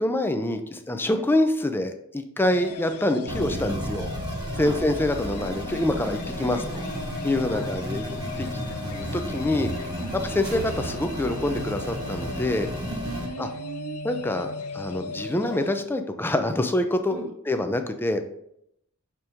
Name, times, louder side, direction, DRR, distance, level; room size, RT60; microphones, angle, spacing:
voice 1, 0.0-4.1 4.5-6.8 7.2-8.1 8.4-8.5 9.0-9.8 10.2-12.7 13.4-13.5 14.0-18.2, left 1 dB, 10° left, 7 dB, 0.4 m, -26 dB
sound 1, 2.4-15.7, left 4 dB, 80° left, 0.5 m, -37 dB
sound 2, 3.3-13.3, right 1 dB, 20° right, 1.1 m, -33 dB
Gunshot gunfire, 10.4-12.3, right 2 dB, 40° right, 1.2 m, -46 dB
voice 2, 12.8-14.0 17.1-17.3, right 3 dB, 85° right, 3 dB, 0.9 m, -38 dB
6.4 x 4.4 x 3.5 m, 0.76 s
head